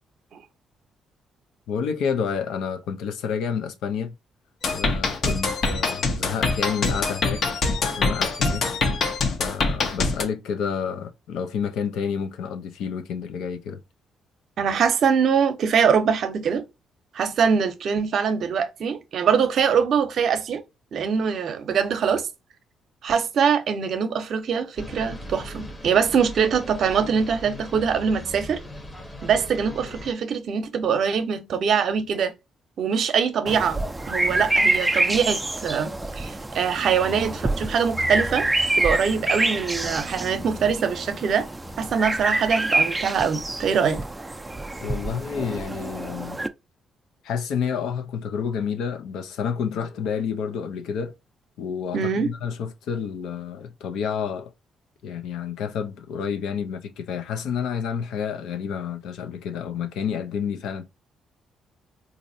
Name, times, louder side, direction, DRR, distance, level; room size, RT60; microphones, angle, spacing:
voice 1, 1.7-4.1 4.7-8.7 9.4-13.8 44.8-46.4 47.2-51.1 51.6-54.5 55.0-60.8, left 7 dB, 85° left, 0.5 m, -29 dB
sound 1, 4.6-10.2, left 3 dB, 55° left, 0.8 m, -24 dB
voice 2, 14.6-16.7 17.1-20.6 20.9-22.3 23.0-28.6 29.2-32.3 32.8-33.8 34.1-38.5 38.8-41.5 41.8-44.0 51.9-52.3, right 6 dB, 65° right, 0.7 m, -23 dB
sound 2, 24.8-30.1, equal, 20° left, 0.9 m, -39 dB
Birds Tree Forest Mastered Natural, 33.5-46.5, right 2 dB, 10° right, 0.4 m, -26 dB
4.1 x 2.6 x 2.6 m
cardioid pair, 90°, 0 cm